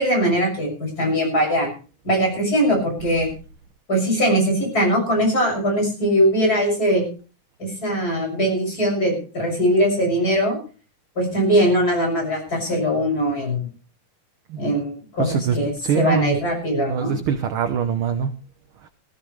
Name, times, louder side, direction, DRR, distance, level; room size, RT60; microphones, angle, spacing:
voice 1, 0.0-1.7 2.0-3.3 3.9-7.0 7.6-10.6 11.2-13.7 14.6-17.2, equal, 30° left, 0 dB, 7.3 m, -21 dB
voice 2, 15.2-15.6 15.8-16.4 16.7-18.3, right 8 dB, 70° right, 9 dB, 1.3 m, -23 dB
18.5 x 15.5 x 3.2 m, 0.36 s
omnidirectional pair, 3.5 m